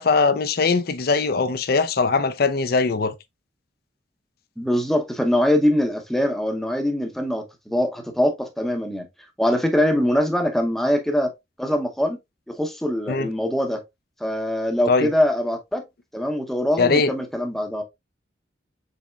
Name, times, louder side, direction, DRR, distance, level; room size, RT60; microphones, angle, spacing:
voice 1, 0.0-3.1 13.1-13.3 14.9-15.1 16.8-17.1, left 4 dB, 50° left, 0.5 m, -21 dB
voice 2, 4.6-9.1 9.4-11.3 11.6-12.2 12.5-13.8 14.2-15.8 16.1-17.8, left 1 dB, ahead, 0.7 m, -23 dB
5.5 x 4.1 x 2.3 m
head